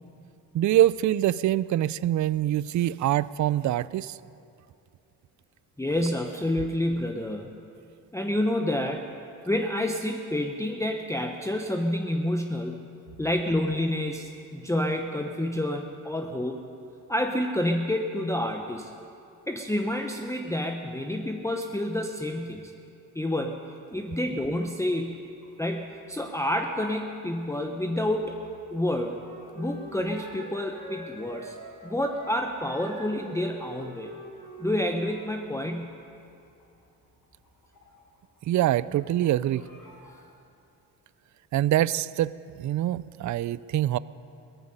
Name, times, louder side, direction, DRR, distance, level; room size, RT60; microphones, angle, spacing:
voice 1, 0.5-4.2 38.5-39.6 41.5-44.0, right 13 dB, 50° right, 19 dB, 0.4 m, -24 dB
voice 2, 5.8-7.5 8.1-9.1 9.5-12.8 13.2-16.6 17.1-18.9 19.5-22.7 23.1-23.6 23.9-25.2 25.6-28.4 28.7-29.2 29.5-31.6 31.8-34.1 34.6-36.0, left 1 dB, 5° left, 2 dB, 0.9 m, -29 dB
sound 1, 25.4-27.0 27.3-30.8 31.2-31.3 31.5-33.1 33.5-35.2 35.5-35.6 35.9-38.4 38.6-38.7 39.1-40.2, left 1 dB, 50° left, 4.9 m, -52 dB
Wind instrument woodwind instrument, 28.8-35.4, right 2 dB, 70° right, 3.6 m, -45 dB
18.0 x 14.0 x 5.4 m, 2.6 s
cardioid pair, 70°, 40 cm